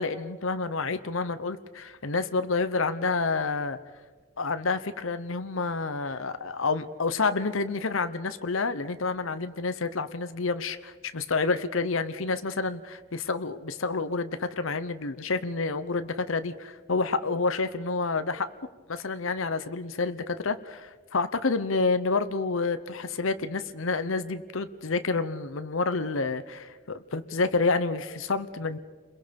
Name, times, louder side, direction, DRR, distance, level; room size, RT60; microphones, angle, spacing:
voice 1, 0.0-3.8 4.4-18.5 18.9-28.8, left 4 dB, 65° left, 11 dB, 0.9 m, -29 dB
30.0 x 22.0 x 5.3 m, 1.4 s
head